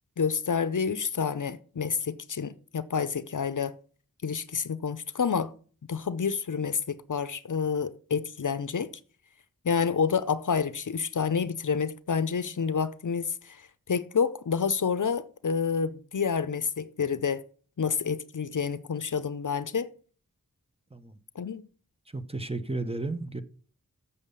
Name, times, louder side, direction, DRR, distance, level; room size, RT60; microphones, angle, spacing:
voice 1, 0.2-3.7 4.2-5.5 5.9-8.9 9.6-17.4 17.8-19.9 21.4-21.6, left 6 dB, 65° left, 0.6 m, -29 dB
voice 2, 22.1-23.4, right 2 dB, 15° right, 0.8 m, -33 dB
7.4 x 6.9 x 6.7 m
wide cardioid pair, 55°, 33 cm